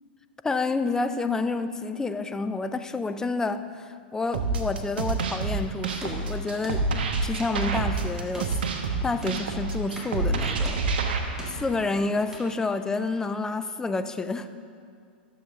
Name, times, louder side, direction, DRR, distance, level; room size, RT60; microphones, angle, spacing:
voice 1, 0.4-6.9 7.2-8.6 9.0-10.8 11.4-14.5, left 3 dB, 10° left, 10 dB, 0.4 m, -29 dB
sound 1, 4.3-11.2, right 4 dB, 70° right, 0.9 m, -27 dB
sound 2, 5.8-13.2, right 1 dB, 10° right, 1.8 m, -45 dB
12.0 x 6.9 x 3.7 m, 2.3 s
hypercardioid pair, 105°, 6 cm